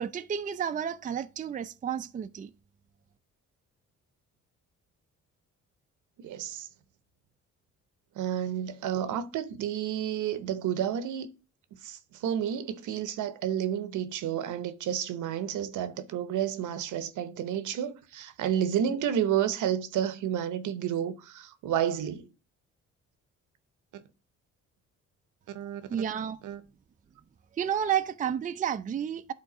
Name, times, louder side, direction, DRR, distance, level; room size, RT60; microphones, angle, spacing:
voice 1, 0.0-2.5 25.9-26.4 27.5-29.3, right 8 dB, 25° right, 0.4 m, -31 dB
voice 2, 6.2-6.7 8.1-11.3 11.8-22.3 23.9-24.0 25.5-25.8 26.4-26.6, right 9 dB, 80° right, 0.8 m, -31 dB
8.6 x 3.8 x 4.9 m
cardioid pair, 90°, 30 cm